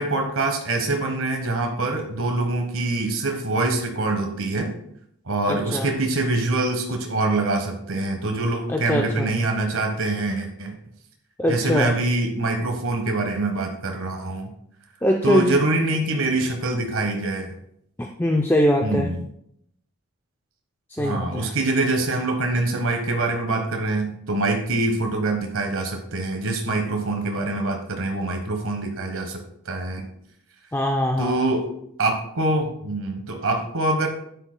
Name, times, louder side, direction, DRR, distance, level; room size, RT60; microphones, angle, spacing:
voice 1, 0.0-4.8 5.3-10.7 11.5-14.5 15.2-17.5 18.8-19.1 21.0-29.4 29.6-30.1 31.2-31.7 32.0-34.1, right 2 dB, 80° right, 3 dB, 1.2 m, -24 dB
voice 2, 5.5-5.9 8.7-9.3 11.4-11.9 15.0-15.6 18.0-19.1 20.9-21.6 30.7-31.4, equal, 10° left, 2 dB, 0.4 m, -22 dB
10.0 x 9.0 x 2.2 m, 0.72 s
head